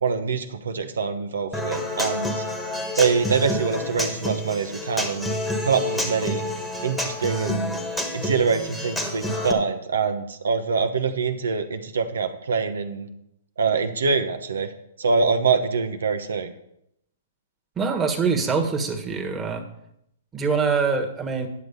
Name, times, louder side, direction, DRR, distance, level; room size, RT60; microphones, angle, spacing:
voice 1, 0.0-2.4 3.0-5.3 5.6-6.4 6.8-7.7 8.1-13.1 13.6-14.7 15.0-16.5, right 5 dB, 80° right, 7 dB, 0.9 m, -24 dB
Human voice / Acoustic guitar, 1.5-9.5, left 1 dB, 5° left, 1.4 m, -28 dB
voice 2, 17.8-19.6 20.3-21.5, right 5 dB, 15° right, 2 dB, 1.5 m, -24 dB
9.7 x 6.4 x 5.4 m, 0.77 s
hypercardioid pair, 125°, 0 cm